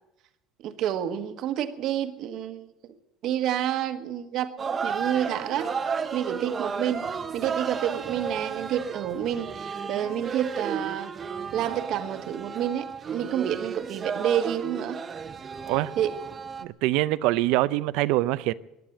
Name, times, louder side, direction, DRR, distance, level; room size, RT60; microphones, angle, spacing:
voice 1, 0.6-2.7 3.2-4.5 4.8-5.7 6.1-7.0 7.3-11.1 11.5-15.0 16.0-16.1, right 10 dB, 55° right, 1.3 m, -29 dB
sound 1, 4.6-16.6, right 6 dB, 25° right, 0.8 m, -33 dB
voice 2, 16.6-18.5, right 17 dB, 70° right, 0.5 m, -24 dB
15.0 x 10.5 x 8.6 m
cardioid pair, 145°, 0 cm